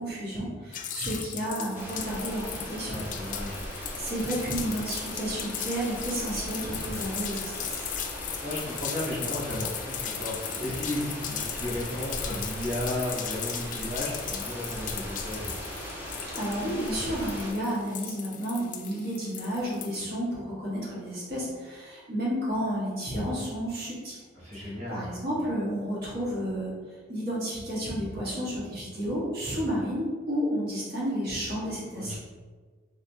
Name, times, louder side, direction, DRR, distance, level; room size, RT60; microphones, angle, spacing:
voice 1, 0.0-2.9 4.0-7.9 16.3-24.2 24.5-26.7 27.1-32.2, equal, 60° right, -7 dB, 1.5 m, -31 dB
sound 1, 0.7-20.0, left 9 dB, 45° left, 0.3 m, -37 dB
sound 2, 1.7-17.5, equal, 10° right, 0.9 m, -39 dB
voice 2, 2.8-3.6 8.4-15.5 24.3-25.1 31.9-32.2, left 1 dB, 40° right, -7 dB, 1.5 m, -34 dB
3.6 x 3.1 x 3.4 m, 1.5 s
head